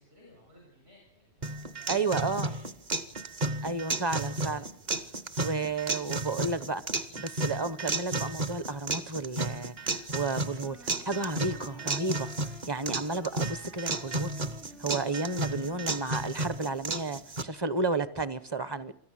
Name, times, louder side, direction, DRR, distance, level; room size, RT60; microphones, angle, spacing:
voice 1, 0.0-3.7 4.0-4.4, left 1 dB, 65° right, 7.2 m, -60 dB
sound 1, 1.4-17.4, right 2 dB, 40° right, 1.0 m, -33 dB
voice 2, 1.9-2.5 3.6-4.6 5.4-6.8 7.1-12.3 12.7-14.3 14.8-18.9, right 3 dB, 25° right, 0.8 m, -32 dB
Sax Tenor - A minor, 10.2-17.2, right 2 dB, 85° right, 5.6 m, -53 dB
24.5 x 14.0 x 7.6 m
omnidirectional pair, 1.2 m